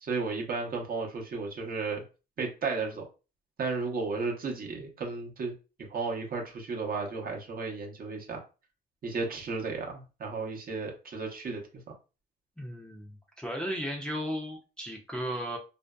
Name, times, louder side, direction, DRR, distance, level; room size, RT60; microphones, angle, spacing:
voice 1, 0.0-2.0 2.4-3.0 3.6-5.5 5.9-8.4 9.0-11.6, right 4 dB, 45° right, 0 dB, 0.8 m, -33 dB
voice 2, 12.6-15.6, equal, 5° left, -1 dB, 0.5 m, -35 dB
2.5 x 2.2 x 2.2 m, 0.32 s
cardioid pair, 90°, 20 cm